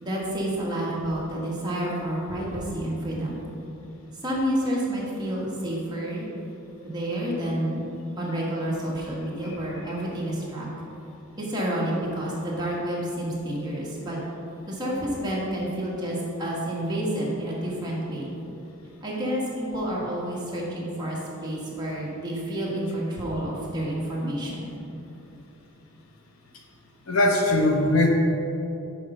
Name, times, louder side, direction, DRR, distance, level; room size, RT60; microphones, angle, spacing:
voice 1, 0.0-3.4 4.2-6.3 6.8-7.9 8.2-10.7 11.4-14.2 14.7-18.4 19.0-24.7, right 1 dB, 20° right, -6 dB, 1.4 m, -29 dB
voice 2, 27.1-28.1, left 2 dB, 70° left, 0 dB, 1.0 m, -20 dB
6.3 x 4.7 x 5.6 m, 2.8 s
head